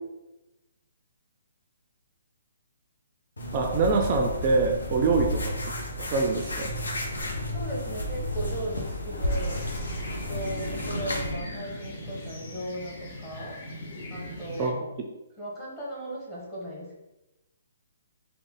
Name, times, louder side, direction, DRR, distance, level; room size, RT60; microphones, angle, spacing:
sound 1, 3.4-11.3, left 1 dB, 75° left, 0.8 m, -32 dB
voice 1, 3.5-5.6 6.0-6.7 14.6-15.1, right 4 dB, 35° right, 3 dB, 0.4 m, -25 dB
voice 2, 7.5-9.6 10.3-13.6 14.1-14.9 15.4-17.0, right 1 dB, 20° left, -5 dB, 1.3 m, -37 dB
sound 2, 9.3-14.7, equal, 45° left, 1.0 m, -39 dB
3.2 x 2.3 x 3.6 m, 0.98 s
figure-of-eight pair, 135°, 0 cm